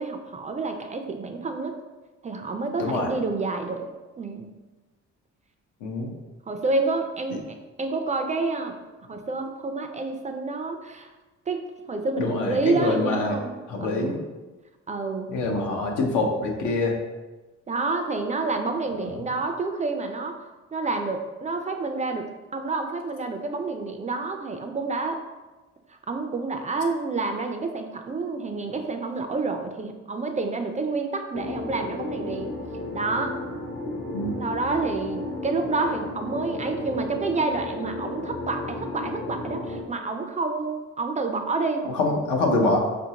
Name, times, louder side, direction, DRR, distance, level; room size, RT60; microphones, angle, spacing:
voice 1, 0.0-1.7 2.2-3.9 4.2-4.5 6.5-7.4 7.8-8.8 9.1-11.1 11.5-11.6 11.9-14.1 14.9-15.3 17.7-20.4 20.7-22.3 22.5-25.2 25.9-32.5 32.9-33.4 34.4-41.9, right 3 dB, 25° right, 5 dB, 0.3 m, -28 dB
voice 2, 2.8-3.1 5.8-6.1 12.2-13.3 13.7-14.2 15.3-17.0 19.0-19.1 34.1-34.3 41.8-42.8, left 2 dB, 85° left, 1 dB, 0.8 m, -25 dB
sound 1, 31.3-39.8, left 2 dB, 40° left, 0.6 m, -34 dB
4.9 x 2.6 x 2.8 m, 1.2 s
cardioid pair, 90°, 30 cm